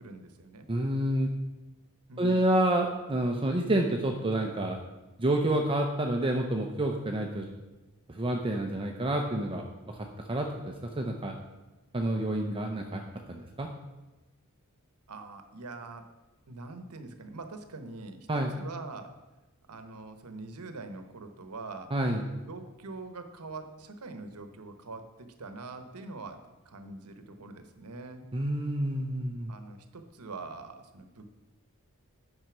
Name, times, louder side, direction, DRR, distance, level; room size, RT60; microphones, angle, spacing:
voice 1, 0.0-0.7 2.1-2.5 15.1-16.0 16.5-19.1 19.7-21.9 22.4-28.2 29.5-31.4, right 3 dB, 85° right, 8 dB, 1.0 m, -44 dB
voice 2, 0.7-1.3 2.2-4.8 5.2-7.5 8.1-11.4 11.9-13.0 13.3-13.7 18.3-18.5 21.9-22.2 28.3-29.5, right 1 dB, 25° right, 2 dB, 0.6 m, -29 dB
9.2 x 5.6 x 6.0 m, 1.1 s
head